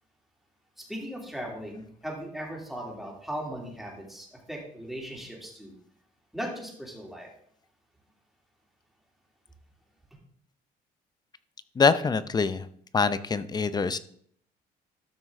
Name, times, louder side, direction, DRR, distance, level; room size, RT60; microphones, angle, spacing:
voice 1, 0.8-5.8 6.3-7.3, equal, ahead, -2 dB, 3.0 m, -38 dB
voice 2, 11.8-12.7 12.9-14.0, left 5 dB, 25° left, 14 dB, 0.6 m, -24 dB
13.0 x 6.0 x 3.7 m, 0.62 s
cardioid pair, 110°, 17 cm